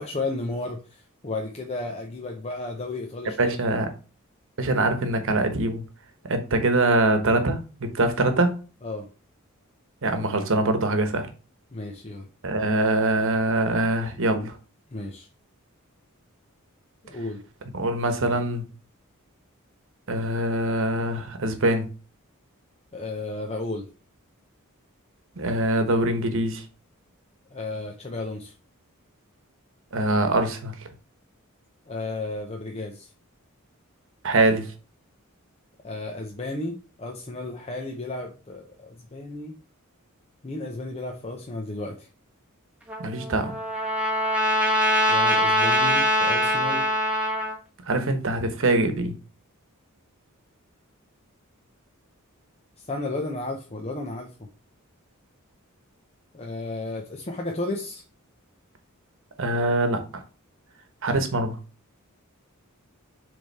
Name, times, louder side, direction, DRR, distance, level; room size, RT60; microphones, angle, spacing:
voice 1, 0.0-3.7 8.8-9.1 11.7-12.3 14.9-15.3 17.0-17.4 22.9-23.9 27.5-28.5 31.9-33.1 35.8-39.6 40.4-42.1 45.1-46.9 52.8-54.3 56.3-58.0, left 2 dB, 30° left, 0.7 m, -33 dB
voice 2, 3.4-3.9 4.6-5.8 6.2-8.6 10.0-11.3 12.4-14.6 17.7-18.6 20.1-21.9 25.4-26.6 29.9-30.7 34.2-34.7 43.0-43.6 47.9-49.1 59.4-60.2 61.0-61.6, right 2 dB, 65° right, 1.1 m, -23 dB
Trumpet, 42.9-47.6, equal, 5° right, 1.2 m, -23 dB
6.9 x 3.5 x 4.1 m
head